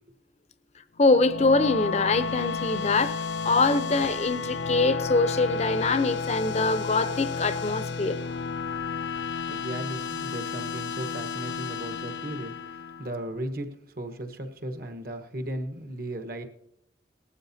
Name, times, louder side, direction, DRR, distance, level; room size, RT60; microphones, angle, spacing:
sound 1, 1.0-13.4, left 5 dB, 75° left, 0.6 m, -32 dB
voice 1, 1.0-8.2, left 3 dB, 35° left, 0.6 m, -24 dB
voice 2, 9.5-13.7 13.9-16.4, right 1 dB, 55° right, 1.2 m, -36 dB
19.0 x 12.5 x 2.7 m
head